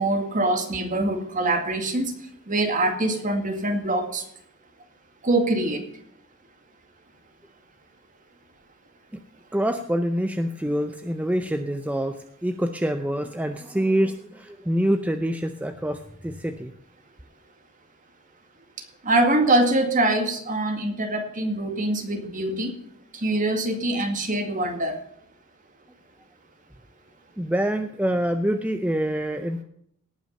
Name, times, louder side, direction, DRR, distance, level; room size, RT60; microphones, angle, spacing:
voice 1, 0.0-2.1 2.5-4.2 5.2-5.8 19.0-22.7 23.2-25.0, right 2 dB, 40° right, 4 dB, 2.1 m, -24 dB
voice 2, 9.5-16.7 27.4-29.6, equal, 5° right, 7 dB, 0.6 m, -26 dB
18.0 x 6.2 x 5.4 m, 0.69 s
head